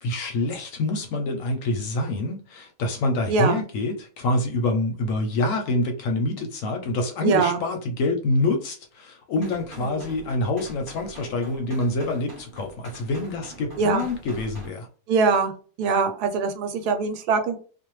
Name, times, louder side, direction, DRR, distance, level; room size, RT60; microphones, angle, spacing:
voice 1, 0.0-14.9, left 2 dB, 70° left, 0.8 m, -26 dB
voice 2, 3.3-3.6 7.2-7.6 9.8-10.0 13.8-14.0 15.1-15.5 15.8-17.6, right 4 dB, 85° right, 1.1 m, -22 dB
sound 1, 9.3-14.7, right 1 dB, 20° right, 0.7 m, -44 dB
2.5 x 2.1 x 3.0 m
omnidirectional pair, 1.6 m